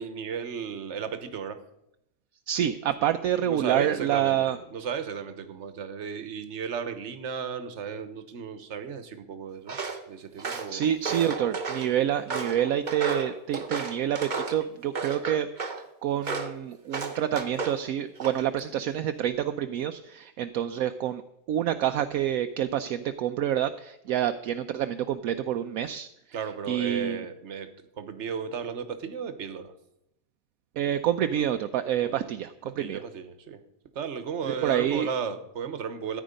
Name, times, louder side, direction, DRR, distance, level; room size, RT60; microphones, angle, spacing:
voice 1, 0.0-1.6 3.4-9.8 10.1-10.8 11.1-11.4 21.8-21.9 26.3-29.7 32.0-32.3 32.7-33.6 33.9-36.2, right 6 dB, 55° right, 10 dB, 1.2 m, -35 dB
voice 2, 2.5-4.6 10.7-15.5 16.0-21.2 21.5-26.1 26.7-27.2 30.8-33.0 34.5-35.1, right 10 dB, 75° right, 9 dB, 1.0 m, -27 dB
Walk footsteps, 9.7-10.0 10.4-11.9 12.3-14.6 15.0-15.8 16.2-16.6 16.9-17.8 18.2-18.6, right 4 dB, 35° right, 1.1 m, -33 dB
14.0 x 9.4 x 5.2 m, 0.83 s
omnidirectional pair, 1.6 m